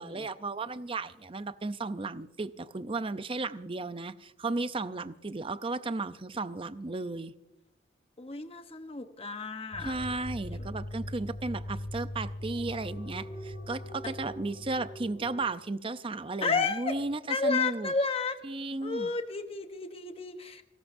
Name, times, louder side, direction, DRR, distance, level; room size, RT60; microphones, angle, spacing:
voice 1, 0.0-7.3 9.8-17.9 18.4-19.1, right 3 dB, 25° right, 13 dB, 0.6 m, -34 dB
voice 2, 8.2-10.0 16.4-16.9 17.3-18.4 18.8-20.6, left 4 dB, 30° left, 7 dB, 1.0 m, -31 dB
sound 1, 9.7-15.5, left 1 dB, 60° left, 4.9 m, -40 dB
29.0 x 14.5 x 2.6 m, 0.93 s
head